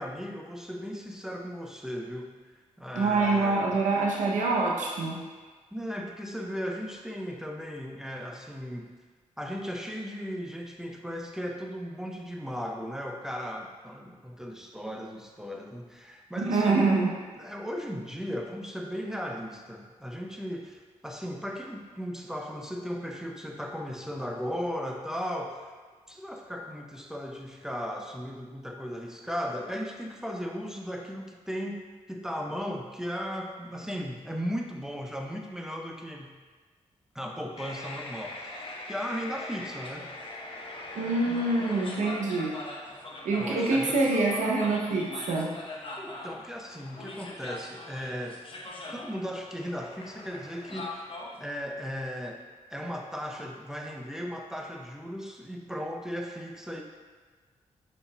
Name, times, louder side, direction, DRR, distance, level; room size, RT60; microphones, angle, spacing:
voice 1, 0.0-2.3 2.8-3.8 5.7-8.9 9.4-16.9 17.3-25.6 26.1-36.4 37.1-40.1 41.3-41.7 43.4-44.0 46.0-48.4 48.9-51.0 51.4-52.4 52.7-56.8, equal, 5° right, 1 dB, 0.6 m, -36 dB
voice 2, 3.0-5.2 16.4-17.1 40.9-42.5 43.2-45.5, right 3 dB, 85° right, -2 dB, 0.7 m, -25 dB
sound 1, 37.6-51.4, left 2 dB, 45° left, 0.8 m, -41 dB
5.0 x 4.6 x 2.3 m, 1.4 s
cardioid pair, 55°, 13 cm